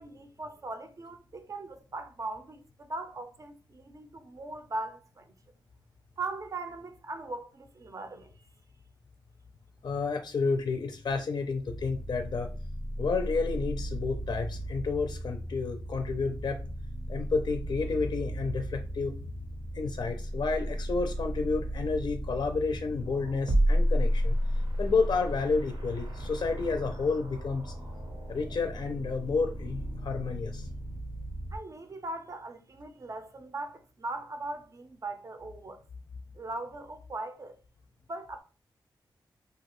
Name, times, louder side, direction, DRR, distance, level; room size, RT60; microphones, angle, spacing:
voice 1, 0.0-5.3 6.2-8.4 31.5-35.8 36.4-37.6 38.1-38.4, right 2 dB, 40° right, 0.5 m, -39 dB
voice 2, 9.8-12.5 13.0-16.6 17.1-19.2 19.7-24.4 24.8-27.7 28.3-30.7, left 4 dB, 60° left, 0.4 m, -30 dB
sound 1, 11.6-31.6, equal, 75° right, 0.8 m, -33 dB
2.7 x 2.4 x 3.0 m
cardioid pair, 70°, 8 cm